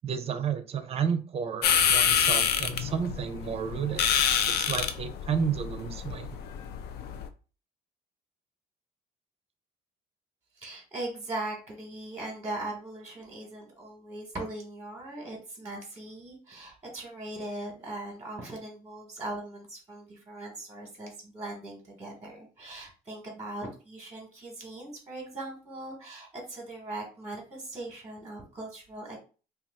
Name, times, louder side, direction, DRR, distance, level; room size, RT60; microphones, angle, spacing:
voice 1, 0.0-4.1 4.5-6.4, right 7 dB, 35° right, 10 dB, 0.5 m, -31 dB
sound 1, 1.6-7.3, left 8 dB, 70° left, 0.4 m, -27 dB
voice 2, 10.6-29.2, right 2 dB, 15° right, -1 dB, 1.1 m, -40 dB
2.7 x 2.3 x 3.4 m, 0.36 s
cardioid pair, 110°, 17 cm